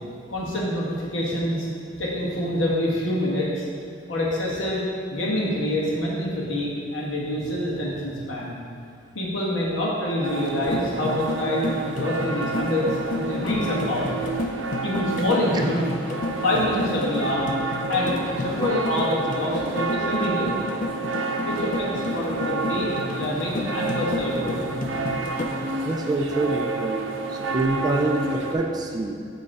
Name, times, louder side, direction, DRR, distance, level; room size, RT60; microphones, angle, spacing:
voice 1, 0.3-1.7 2.0-3.7 4.1-8.6 9.1-14.1 14.8-15.9 16.4-20.5 21.4-24.6, left 1 dB, 80° left, -5 dB, 1.4 m, -26 dB
sound 1, 10.2-28.6, right 3 dB, 80° right, 0.6 m, -30 dB
sound 2, 10.6-25.7, left 2 dB, 45° left, 0.5 m, -32 dB
voice 2, 25.8-27.0 27.3-29.1, right 2 dB, 20° right, 2 dB, 0.3 m, -25 dB
7.5 x 3.1 x 4.7 m, 2.4 s
head